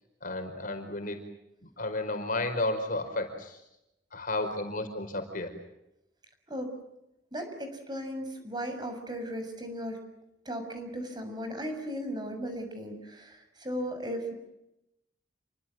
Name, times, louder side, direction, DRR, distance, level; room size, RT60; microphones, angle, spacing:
voice 1, 0.2-1.2 1.8-3.6 4.1-5.5, left 2 dB, 45° left, 6 dB, 5.0 m, -32 dB
voice 2, 7.3-10.0 10.4-14.3, equal, 25° right, 6 dB, 6.8 m, -36 dB
29.0 x 24.5 x 7.8 m, 0.86 s
head